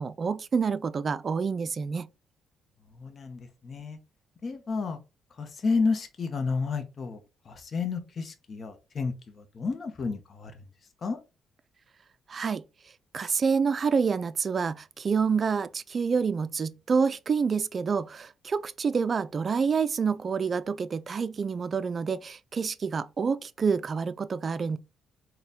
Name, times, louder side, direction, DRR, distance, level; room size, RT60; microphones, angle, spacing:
voice 1, 0.0-2.1 12.3-12.6 13.1-24.8, right 5 dB, 40° right, 0.3 m, -28 dB
voice 2, 2.9-4.0 4.4-5.0 5.4-10.5 11.0-11.2, left 4 dB, 45° left, 0.7 m, -31 dB
4.1 x 2.1 x 3.5 m
cardioid pair, 90°, 0 cm